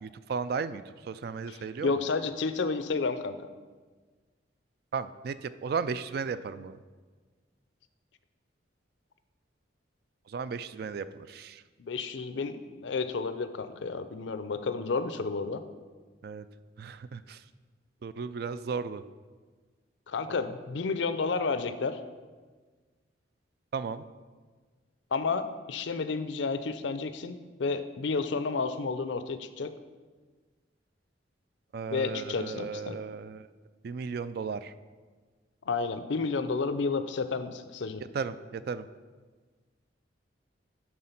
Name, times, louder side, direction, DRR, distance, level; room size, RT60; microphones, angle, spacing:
voice 1, 0.0-1.9 4.9-6.8 10.3-11.6 16.2-16.5 16.8-17.4 18.0-19.0 20.3-20.4 23.7-24.0 31.7-33.5 33.8-34.7 38.1-38.9, right 5 dB, 55° right, 13 dB, 0.3 m, -35 dB
voice 2, 1.5-3.5 11.8-15.6 20.1-22.0 25.1-29.7 31.9-33.0 35.7-38.0, left 4 dB, 75° left, 11 dB, 0.5 m, -31 dB
10.5 x 3.7 x 5.8 m, 1.4 s
head